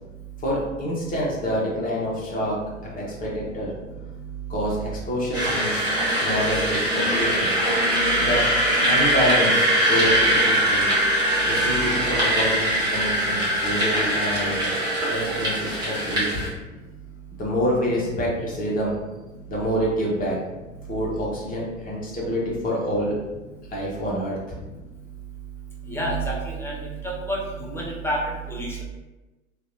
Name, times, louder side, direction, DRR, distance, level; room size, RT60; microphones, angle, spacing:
voice 1, 0.4-2.6 2.9-3.7 4.5-5.9 6.2-7.6 8.2-8.5 8.9-10.9 11.4-14.7 15.1-16.4 17.4-19.0 19.5-20.4 20.9-23.2 23.7-24.6, equal, 20° left, -4 dB, 1.0 m, -27 dB
sound 1, 5.3-16.5, right 1 dB, 10° right, 1.2 m, -22 dB
voice 2, 25.9-26.7 27.3-28.2 28.5-28.8, right 1 dB, 5° left, -4 dB, 0.6 m, -28 dB
3.1 x 2.5 x 2.6 m, 1.1 s
figure-of-eight pair, 80°, 38 cm